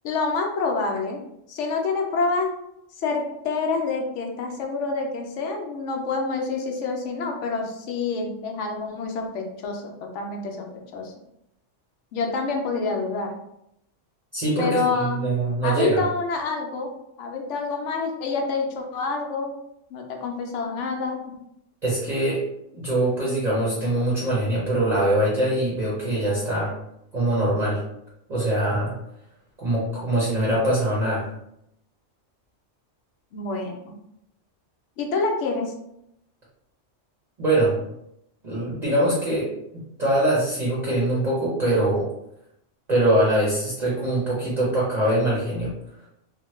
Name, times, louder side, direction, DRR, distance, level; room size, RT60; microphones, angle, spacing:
voice 1, 0.0-1.2 1.5-2.5 3.0-10.7 10.9-11.1 12.1-13.3 14.6-15.2 15.6-16.9 17.2-19.5 19.9-21.3 33.3-33.9 35.0-35.7, left 4 dB, 75° left, 2 dB, 0.9 m, -27 dB
voice 2, 14.3-16.0 21.8-22.4 22.7-26.7 27.1-27.8 28.3-28.9 29.6-31.3 37.4-37.8 38.4-39.5 40.0-42.1 42.9-45.7, right 1 dB, 40° right, -7 dB, 0.8 m, -23 dB
2.9 x 2.1 x 3.0 m, 0.79 s
omnidirectional pair, 1.3 m